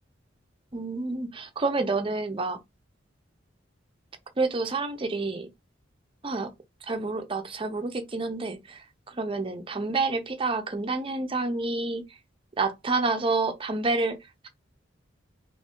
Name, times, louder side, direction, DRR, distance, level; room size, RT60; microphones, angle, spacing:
voice 1, 0.7-2.6 4.4-5.5 6.2-6.5 6.9-12.0 12.6-14.2 14.4-14.5, right 3 dB, 30° right, 0.6 m, -28 dB
3.0 x 2.7 x 3.5 m
head